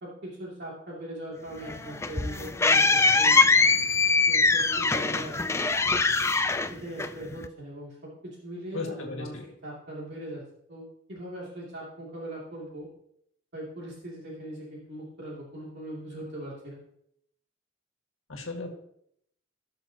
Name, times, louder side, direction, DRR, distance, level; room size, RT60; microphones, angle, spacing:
voice 1, 0.0-3.4 4.3-5.6 6.7-10.4 10.7-12.9 13.5-16.8, right 1 dB, 55° right, -5 dB, 2.6 m, -40 dB
sound 1, 1.6-7.5, left 4 dB, 15° left, 0.3 m, -22 dB
voice 2, 8.7-9.5 18.3-18.8, left 3 dB, 90° left, 2 dB, 1.9 m, -36 dB
18.0 x 6.4 x 2.9 m, 0.72 s
head